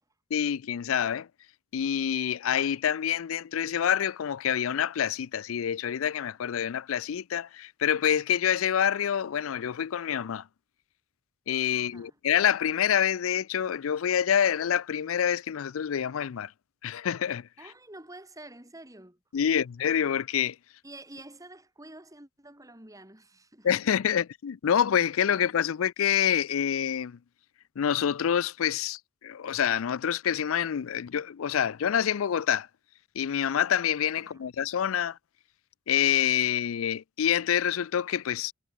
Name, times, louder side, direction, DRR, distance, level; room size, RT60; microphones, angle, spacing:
voice 1, 0.3-1.3 1.7-10.5 11.5-16.5 16.8-17.5 19.3-20.6 23.6-27.2 27.8-32.7 33.2-35.2 35.9-38.5, left 9 dB, 75° left, 0.4 m, -27 dB
voice 2, 11.7-12.2 17.6-19.2 20.8-23.8 25.3-25.5 34.2-34.4, right 1 dB, 15° right, 4.6 m, -48 dB
head